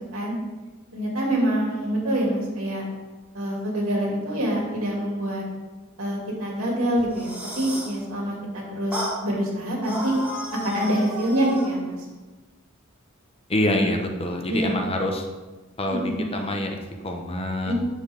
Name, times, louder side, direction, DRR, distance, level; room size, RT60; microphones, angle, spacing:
voice 1, 0.9-2.8 3.3-5.4 6.0-10.1 10.5-12.0 14.5-14.7 15.9-16.2 17.6-17.7, right 1 dB, 85° right, -2 dB, 2.7 m, -26 dB
sound 1, 7.0-8.0 8.9-9.2 9.8-11.8, left 1 dB, 10° right, 2.1 m, -33 dB
voice 2, 13.5-15.2 15.8-17.7, left 1 dB, 30° left, 3 dB, 0.9 m, -26 dB
9.5 x 6.8 x 3.6 m, 1.2 s
head